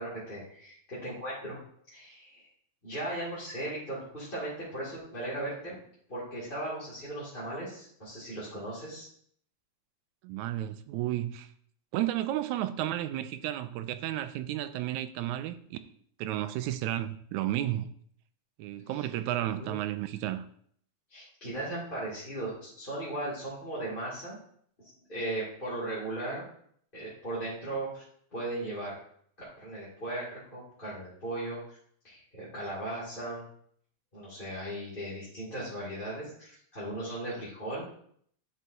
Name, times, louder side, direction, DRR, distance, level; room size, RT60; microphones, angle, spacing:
voice 1, 0.0-1.6 1.9-2.5 2.8-5.8 6.1-9.1 19.0-19.1 19.5-19.8 21.1-24.4 25.1-26.4 26.9-28.0 28.3-28.9 29.6-31.8 32.0-33.4 34.1-37.8, right 1 dB, 20° left, 2.1 m, -37 dB
voice 2, 10.2-11.5 11.9-15.9 16.2-17.9 18.6-20.4, right 13 dB, 85° right, 1.9 m, -32 dB
11.0 x 5.5 x 2.7 m
omnidirectional pair, 3.3 m